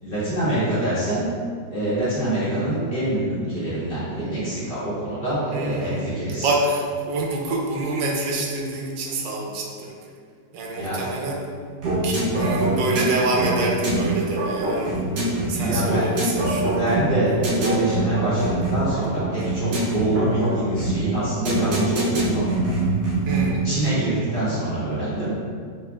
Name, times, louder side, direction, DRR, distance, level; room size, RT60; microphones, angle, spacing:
voice 1, 0.0-1.3 1.7-6.5 10.7-11.0 15.5-16.0 16.8-22.4 23.6-25.3, right 1 dB, 30° left, -11 dB, 1.5 m, -25 dB
voice 2, 5.5-6.2 6.4-9.9 10.5-11.5 12.0-15.0 15.5-16.8 23.3-23.7, right 2 dB, 80° right, -1 dB, 1.3 m, -27 dB
sound 1, 11.8-23.6, right 2 dB, 65° right, 1.5 m, -24 dB
4.8 x 2.9 x 3.3 m, 2.1 s
omnidirectional pair, 1.9 m